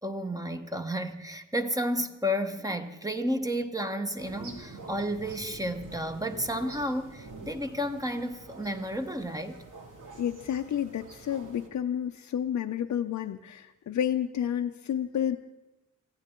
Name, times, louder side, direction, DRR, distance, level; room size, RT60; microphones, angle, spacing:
voice 1, 0.0-9.6, equal, 10° right, 7 dB, 1.0 m, -32 dB
sound 1, 4.2-11.7, right 3 dB, 85° right, 2.4 m, -47 dB
voice 2, 10.2-15.4, left 9 dB, 70° left, 5 dB, 0.6 m, -30 dB
24.0 x 15.0 x 3.7 m, 1.0 s
wide cardioid pair, 130°, 30 cm